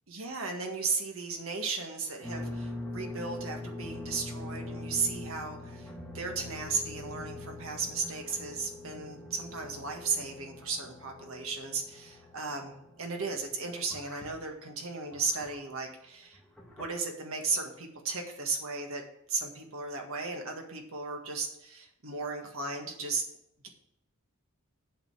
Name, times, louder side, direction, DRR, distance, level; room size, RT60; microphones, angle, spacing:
voice 1, 0.1-5.9 6.1-16.4 16.8-19.0 19.3-23.2, right 4 dB, 65° right, 3 dB, 1.8 m, -35 dB
sound 1, 2.2-15.7 16.3-16.9, left 2 dB, 5° left, 1.6 m, -43 dB
8.1 x 5.2 x 7.5 m, 0.76 s
head